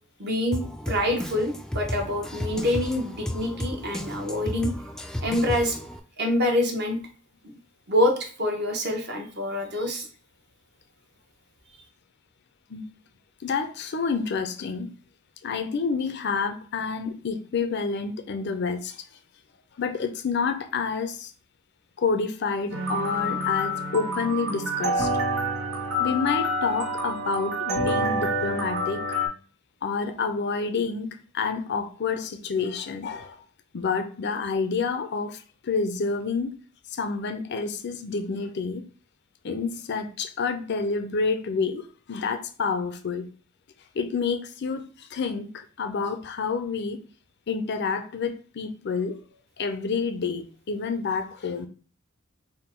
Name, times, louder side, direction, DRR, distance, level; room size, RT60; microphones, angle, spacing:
voice 1, 0.2-4.7 5.2-5.8 6.2-7.0 7.9-10.1, left 1 dB, 55° right, 1.0 m, -26 dB
Drum kit, 0.5-6.0, left 1 dB, 5° left, 0.3 m, -33 dB
voice 2, 13.4-14.9 15.4-19.0 19.8-21.3 22.0-25.1 26.0-29.2 29.8-33.4 33.7-36.6 36.9-38.9 39.4-43.3 43.9-47.1 47.5-49.2 49.6-51.7, left 5 dB, 55° left, 0.5 m, -28 dB
sound 1, 22.7-29.3, equal, 90° right, 1.1 m, -27 dB
3.6 x 2.2 x 4.4 m
head